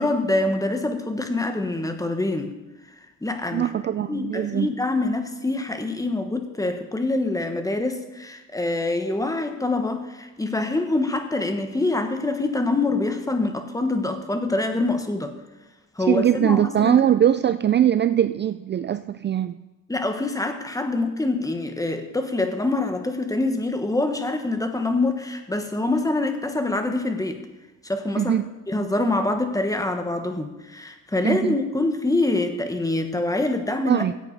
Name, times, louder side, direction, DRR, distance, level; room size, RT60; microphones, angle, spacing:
voice 1, 0.0-2.5 3.2-3.7 4.1-15.4 16.0-17.0 19.9-27.4 27.8-28.4 28.7-34.0, left 2 dB, 10° left, 6 dB, 1.4 m, -25 dB
voice 2, 3.5-4.7 16.1-19.6 28.2-28.5 31.2-31.6 33.9-34.1, right 10 dB, 35° right, 12 dB, 0.4 m, -21 dB
15.5 x 8.3 x 4.1 m, 1.1 s
cardioid pair, 90°, 30 cm